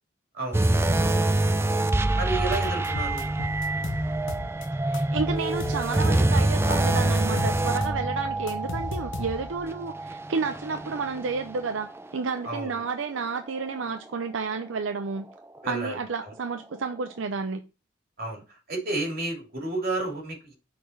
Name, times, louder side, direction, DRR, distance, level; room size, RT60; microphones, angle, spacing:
voice 1, 0.3-0.7 2.2-3.3 12.4-12.8 15.6-16.0 18.2-18.4 18.7-20.6, right 2 dB, 50° right, 2.8 m, -31 dB
sound 1, 0.5-12.0 12.4-12.6 13.2-13.3, right 2 dB, 15° right, 0.4 m, -26 dB
sound 2, 2.5-4.7 4.9-6.4 6.7-9.6, left 2 dB, 75° left, 0.8 m, -35 dB
voice 2, 4.8-15.3 15.7-17.6, right 4 dB, 85° right, 0.5 m, -31 dB
6.0 x 4.2 x 4.5 m
head